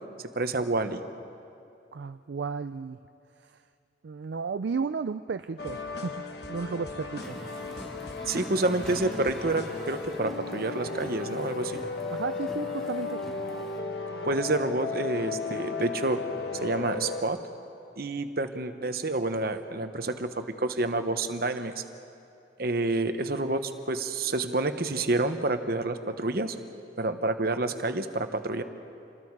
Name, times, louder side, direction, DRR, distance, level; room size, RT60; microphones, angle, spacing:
voice 1, 0.4-1.0 8.3-11.8 14.2-16.2 16.6-17.4 18.0-21.7 22.6-26.6 27.0-28.6, right 2 dB, 55° right, 8 dB, 1.0 m, -28 dB
voice 2, 1.9-3.0 3.4-3.6 4.0-6.1 6.5-7.3 12.1-13.2, right 5 dB, 70° right, 10 dB, 0.4 m, -33 dB
sound 1, 5.6-17.2, left 4 dB, 60° left, 1.3 m, -35 dB
sound 2, 7.1-13.8, equal, ahead, 1.7 m, -45 dB
28.0 x 20.5 x 4.7 m, 2.6 s
head